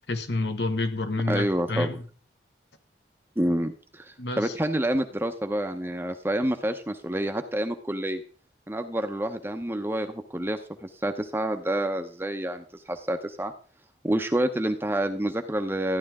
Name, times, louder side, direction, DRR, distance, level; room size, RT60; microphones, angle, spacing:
voice 1, 0.1-2.0 4.2-4.5, left 2 dB, 65° left, 8 dB, 1.6 m, -28 dB
voice 2, 1.3-2.0 3.4-8.2 8.7-13.5 14.0-16.0, right 1 dB, 10° right, 6 dB, 0.8 m, -28 dB
14.0 x 10.5 x 3.7 m, 0.40 s
head